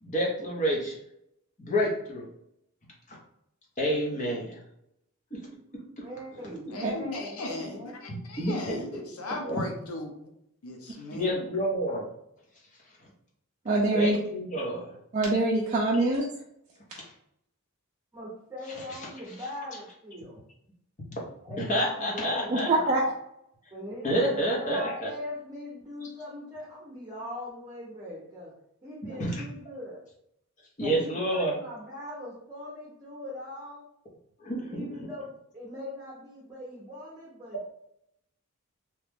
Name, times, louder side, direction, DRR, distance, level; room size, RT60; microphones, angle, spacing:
voice 1, 0.0-1.0 1.6-2.3 3.1-3.2 3.8-4.6 5.3-5.4 6.0-6.1 8.1-8.8 9.4-9.6 11.1-12.0 13.9-14.9 21.1-21.2 21.6-22.7 24.0-25.1 29.0-29.4 30.8-31.5 34.4-34.9, equal, 35° left, -2 dB, 0.9 m, -29 dB
voice 2, 6.0-7.9 18.1-20.4 21.4-23.0 23.7-28.5 28.8-30.0 30.8-33.8 34.7-35.3 35.5-37.6, left 1 dB, 15° right, -6 dB, 0.8 m, -41 dB
voice 3, 6.7-10.1 10.6-11.5, left 2 dB, 80° left, 2 dB, 0.6 m, -37 dB
voice 4, 13.7-14.2 15.1-16.3 22.5-23.0, right 2 dB, 35° right, -3 dB, 0.4 m, -24 dB
2.9 x 2.4 x 3.5 m, 0.76 s
head